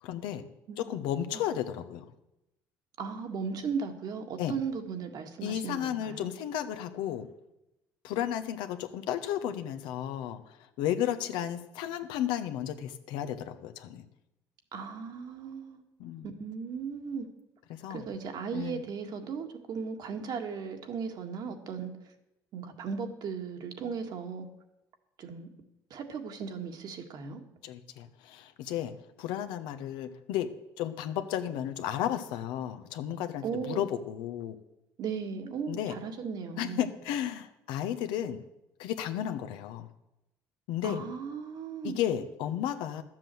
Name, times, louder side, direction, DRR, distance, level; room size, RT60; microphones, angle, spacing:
voice 1, 0.0-0.5 0.8-2.1 4.4-4.6 5.4-7.3 8.0-14.1 16.0-16.3 17.7-18.1 18.5-18.8 27.6-30.5 30.8-34.6 35.7-36.0 36.6-38.4 38.8-39.9 40.7-41.0 41.8-43.0, left 10 dB, 85° left, 9 dB, 1.0 m, -33 dB
voice 2, 3.0-6.3 14.7-15.8 16.2-17.3 17.9-21.9 22.5-24.5 25.2-25.5 25.9-27.4 33.4-33.8 35.0-36.8 40.8-42.0, right 6 dB, 60° right, 4 dB, 1.8 m, -36 dB
12.0 x 7.5 x 7.7 m, 0.91 s
supercardioid pair, 85°, 8 cm